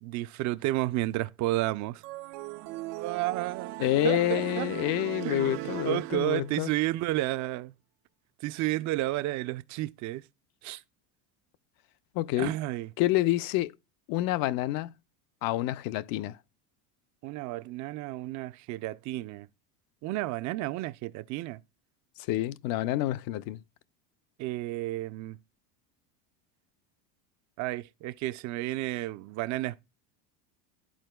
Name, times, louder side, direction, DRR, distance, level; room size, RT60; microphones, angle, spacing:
voice 1, 0.0-2.0 3.0-3.8 4.0-4.7 5.2-7.7 8.4-10.2 10.6-10.8 12.4-12.9 17.2-19.5 20.0-21.6 24.4-25.4 27.6-29.8, right 17 dB, 40° right, 0.4 m, -31 dB
sound 1, 2.0-6.7, right 18 dB, 75° right, 0.7 m, -38 dB
voice 2, 3.8-6.7 12.1-12.5 13.0-13.7 14.1-14.9 15.4-16.4 22.3-23.6, left 15 dB, 50° left, 0.5 m, -28 dB
12.5 x 4.3 x 2.2 m
supercardioid pair, 115°, 46 cm